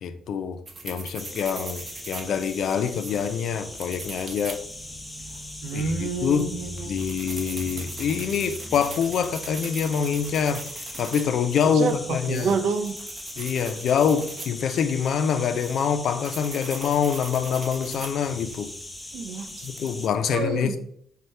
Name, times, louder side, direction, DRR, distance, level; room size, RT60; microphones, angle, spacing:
voice 1, 0.0-4.6 5.7-6.5 6.9-10.6 11.0-12.5 13.4-18.7 19.6-20.8, left 7 dB, 70° left, 0.3 m, -25 dB
sound 1, 0.7-20.1, right 2 dB, 40° right, 0.7 m, -41 dB
sound 2, 1.2-20.1, left 1 dB, 10° left, 0.5 m, -40 dB
voice 2, 5.6-7.0 11.6-12.9 19.1-19.7 20.3-20.8, right 4 dB, 85° right, 0.4 m, -28 dB
5.4 x 2.2 x 3.1 m
cardioid pair, 90°, 0 cm